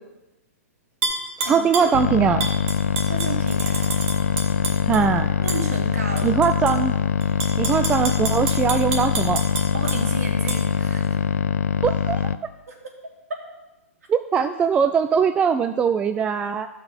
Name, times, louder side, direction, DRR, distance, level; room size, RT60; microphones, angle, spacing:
Tap / Glass, 1.0-1.9 2.4-5.0 5.5-5.6 6.2-6.7 7.2-10.0 10.5-10.6, right 4 dB, 50° right, 2.3 m, -29 dB
voice 1, 1.5-2.5 4.9-5.3 6.2-6.9 7.6-9.4 11.8-12.3 14.1-16.7, right 6 dB, 15° right, 9 dB, 0.3 m, -21 dB
sound 1, 1.9-12.4, left 7 dB, 70° left, 0.5 m, -23 dB
voice 2, 3.1-3.9 5.4-6.3 9.7-11.2 12.7-12.8 14.4-14.5, right 2 dB, 80° right, -1 dB, 3.1 m, -32 dB
12.5 x 5.9 x 5.3 m, 1.0 s
hypercardioid pair, 130°, 8 cm